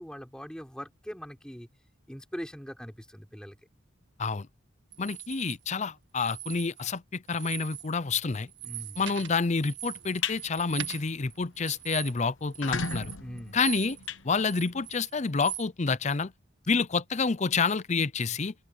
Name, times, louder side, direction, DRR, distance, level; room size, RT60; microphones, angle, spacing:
voice 1, 0.0-1.7 2.1-3.6 8.6-9.0 13.2-13.6, equal, 5° left, 5.1 m, -41 dB
sound 1, 4.9-5.6 6.2-7.0 7.3-7.9 8.2-14.1 14.4-15.7, right 12 dB, 60° right, 2.2 m, -41 dB
voice 2, 5.0-8.5 9.0-13.1 13.5-14.0 14.2-16.3 16.7-18.5, left 4 dB, 35° left, 0.6 m, -28 dB
sound 2, 9.9-10.4 10.8-11.1 11.4-11.5 11.8-11.9 12.4-14.9, left 5 dB, 75° left, 1.2 m, -35 dB
open air
head